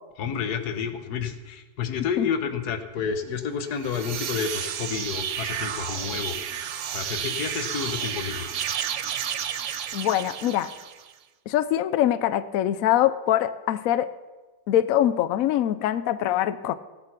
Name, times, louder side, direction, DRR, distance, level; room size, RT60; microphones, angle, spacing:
voice 1, 0.2-6.4 6.9-8.5, left 7 dB, 55° left, 8 dB, 1.5 m, -30 dB
sound 1, 3.7-11.1, right 9 dB, 80° right, 0.6 m, -31 dB
voice 2, 9.9-10.7 11.5-14.1 14.7-16.7, left 12 dB, 90° left, 14 dB, 0.7 m, -23 dB
16.5 x 8.5 x 6.0 m, 1.2 s
omnidirectional pair, 2.1 m